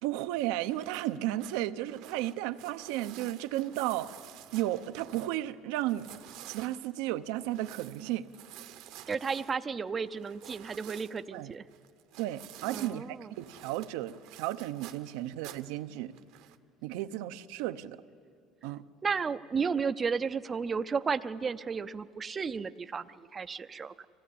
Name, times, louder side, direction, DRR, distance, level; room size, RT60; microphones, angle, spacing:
voice 1, 0.0-4.2 4.5-8.3 11.3-11.5 12.2-16.1 16.8-18.0 18.6-18.8, right 14 dB, 80° right, 11 dB, 0.7 m, -34 dB
sound 1, 0.7-5.4 5.8-13.0 13.3-15.8 16.1-16.6, right 13 dB, 60° right, 1.0 m, -50 dB
voice 2, 9.1-11.6 12.7-13.3 19.0-24.1, right 5 dB, 20° right, 13 dB, 0.5 m, -33 dB
25.5 x 17.5 x 8.5 m, 2.6 s
cardioid pair, 165°, 0 cm